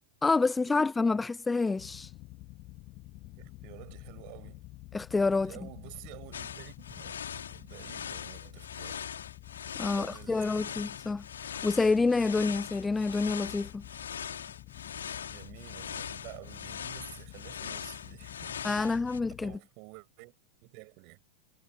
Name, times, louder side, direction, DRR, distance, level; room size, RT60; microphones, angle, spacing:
voice 1, 0.2-2.1 4.9-5.5 9.8-13.9 18.6-19.6, left 3 dB, 10° left, 0.8 m, -28 dB
sound 1, 1.8-19.6, left 20 dB, 40° left, 2.7 m, -49 dB
voice 2, 3.4-4.6 5.4-9.2 9.9-10.7 15.3-19.0 19.4-20.3 20.6-21.2, right 35 dB, 45° right, 6.0 m, -50 dB
sound 2, 6.3-19.2, left 8 dB, 65° left, 3.8 m, -41 dB
figure-of-eight pair, 90°, 0 cm